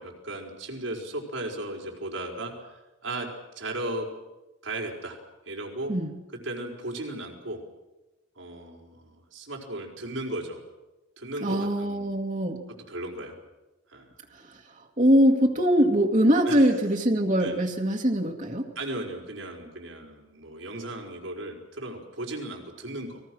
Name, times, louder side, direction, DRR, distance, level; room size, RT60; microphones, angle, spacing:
voice 1, 0.0-3.3 3.5-4.1 4.6-5.2 5.5-5.9 6.4-7.6 8.4-10.6 11.2-12.2 12.9-13.3 13.9-14.1 16.5-16.8 17.4-17.6 18.7-23.2, right 1 dB, 80° right, 0 dB, 4.9 m, -36 dB
voice 2, 11.4-12.7 15.0-18.7, equal, 40° right, 2 dB, 2.0 m, -22 dB
29.5 x 21.0 x 6.3 m, 1.0 s
head